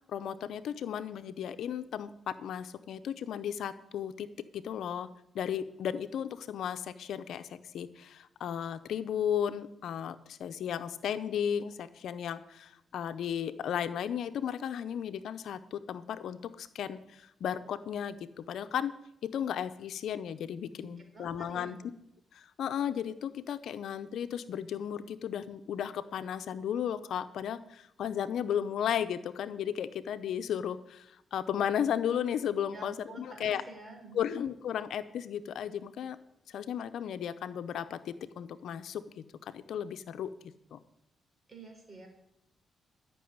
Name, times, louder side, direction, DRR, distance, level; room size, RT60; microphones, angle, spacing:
voice 1, 0.1-4.3 4.5-5.1 5.3-18.9 19.2-21.9 22.3-33.6 34.1-36.2 36.5-40.3 40.7-40.8, left 9 dB, 80° left, 11 dB, 0.8 m, -35 dB
voice 2, 20.7-21.8 32.7-34.2 41.5-42.1, right 2 dB, 35° right, 4 dB, 4.1 m, -49 dB
13.0 x 6.2 x 9.5 m, 0.81 s
cardioid pair, 85°, 0 cm